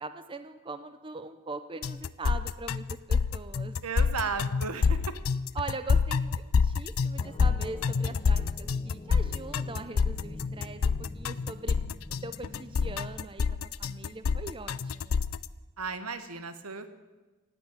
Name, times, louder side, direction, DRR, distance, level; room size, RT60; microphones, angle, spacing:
voice 1, 0.0-3.7 5.5-11.8 12.2-13.4 13.8-15.2, right 3 dB, 25° right, 10 dB, 0.6 m, -41 dB
sound 1, 1.8-15.5, left 5 dB, 65° left, 0.5 m, -27 dB
voice 2, 3.8-5.1 15.8-16.9, right 5 dB, 85° right, 10 dB, 1.3 m, -34 dB
sound 2, 7.2-13.1, left 2 dB, 20° left, 0.8 m, -45 dB
15.5 x 9.3 x 8.8 m, 1.2 s
head